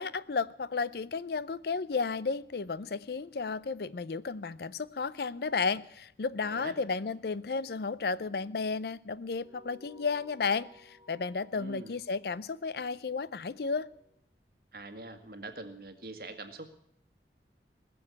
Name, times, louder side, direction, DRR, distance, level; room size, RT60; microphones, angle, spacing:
voice 1, 0.0-13.9, left 4 dB, 60° left, 18 dB, 0.5 m, -33 dB
voice 2, 6.4-6.8 11.5-11.9 14.7-16.7, right 2 dB, 55° right, 8 dB, 1.8 m, -44 dB
sound 1, 9.4-14.2, left 2 dB, 30° right, 1.8 m, -59 dB
20.0 x 7.1 x 9.7 m, 0.71 s
head